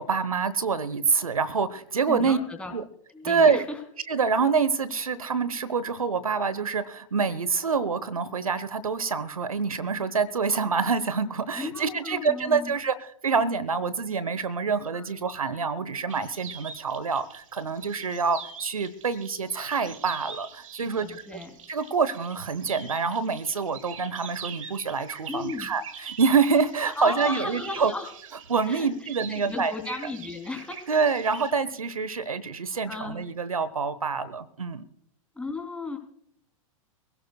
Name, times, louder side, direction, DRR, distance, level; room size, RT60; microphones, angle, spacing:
voice 1, 0.0-2.4 2.7-2.8 3.2-3.6 4.1-21.4 21.7-27.9 28.5-29.7 30.9-34.8, right 5 dB, 85° right, 16 dB, 1.0 m, -26 dB
voice 2, 2.1-2.7 3.1-3.8 11.5-12.7 14.9-15.1 20.8-21.6 25.3-25.7 27.0-28.1 28.7-30.9 32.9-33.2 35.3-36.0, left 3 dB, 5° left, 3 dB, 3.3 m, -35 dB
sound 1, 16.1-31.5, right 7 dB, 70° right, 1.7 m, -43 dB
24.5 x 17.0 x 2.3 m, 0.70 s
figure-of-eight pair, 100°, 18 cm